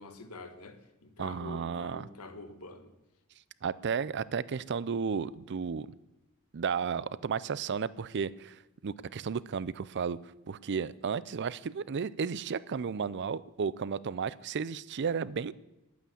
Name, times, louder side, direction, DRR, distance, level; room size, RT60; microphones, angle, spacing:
voice 1, 0.0-2.9, left 2 dB, 80° left, 8 dB, 1.5 m, -46 dB
voice 2, 1.2-2.1 3.6-5.9 6.5-10.2 10.5-15.5, right 6 dB, 55° right, 19 dB, 0.5 m, -33 dB
11.0 x 9.3 x 8.4 m, 0.93 s
head